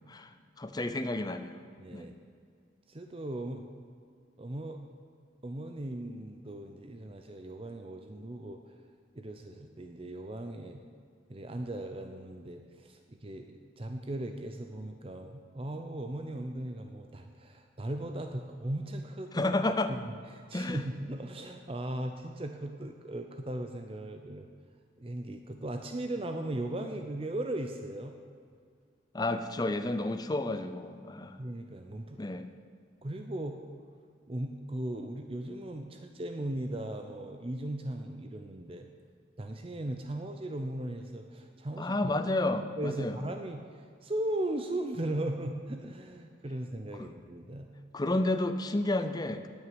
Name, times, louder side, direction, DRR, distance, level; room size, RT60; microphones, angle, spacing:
voice 1, 0.6-1.6 1.9-2.1 19.3-19.9 20.5-20.8 29.1-31.4 32.2-32.5 41.8-43.2 47.0-47.1 47.9-49.5, left 2 dB, 20° left, 9 dB, 0.6 m, -31 dB
voice 2, 1.8-2.2 2.9-3.6 4.4-4.8 5.4-8.6 9.1-10.8 11.3-19.5 19.9-24.5 25.0-28.1 31.4-32.2 33.0-33.6 34.3-38.9 39.4-41.9 42.4-47.7, right 1 dB, 30° right, 5 dB, 0.6 m, -37 dB
9.3 x 8.9 x 9.3 m, 2.2 s
head